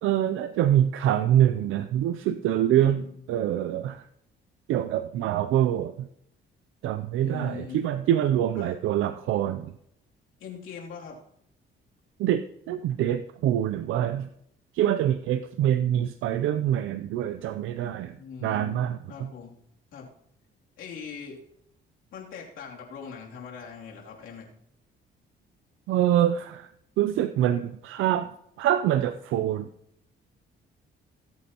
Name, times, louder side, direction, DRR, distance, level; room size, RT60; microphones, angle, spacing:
voice 1, 0.0-4.0 4.7-6.1 6.8-9.7 12.2-14.3 14.7-19.3 25.9-26.7 27.0-29.7, right 11 dB, 85° right, 10 dB, 0.5 m, -25 dB
voice 2, 2.7-3.1 7.2-7.8 8.5-8.8 10.4-11.2 18.2-18.8 19.1-19.6 19.9-20.1 20.8-21.4 22.1-24.5, left 6 dB, 80° left, -2 dB, 3.0 m, -41 dB
21.0 x 8.5 x 3.0 m, 0.73 s
cardioid pair, 90°, 20 cm